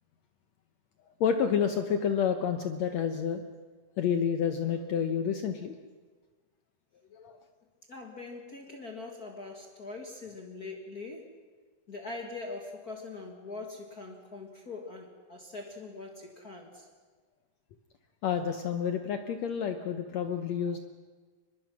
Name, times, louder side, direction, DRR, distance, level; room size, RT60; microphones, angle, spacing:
voice 1, 1.2-3.4 4.0-5.8 7.1-7.4 16.7-16.8 18.2-20.8, left 7 dB, 70° left, 7 dB, 1.7 m, -29 dB
voice 2, 7.9-11.3 11.9-16.9, left 3 dB, 40° left, 2 dB, 1.4 m, -42 dB
24.5 x 21.0 x 6.1 m, 1.4 s
omnidirectional pair, 4.1 m